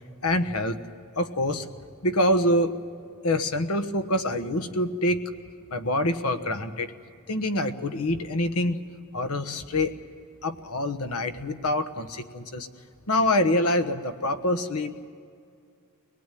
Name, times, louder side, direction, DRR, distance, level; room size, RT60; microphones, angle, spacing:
voice 1, 0.2-0.8 1.2-1.7 2.0-2.7 3.2-5.2 5.7-6.9 7.3-8.9 9.1-10.0 10.4-12.7 13.1-15.1, left 1 dB, 85° left, 10 dB, 1.2 m, -25 dB
23.5 x 19.5 x 9.2 m, 2.3 s
head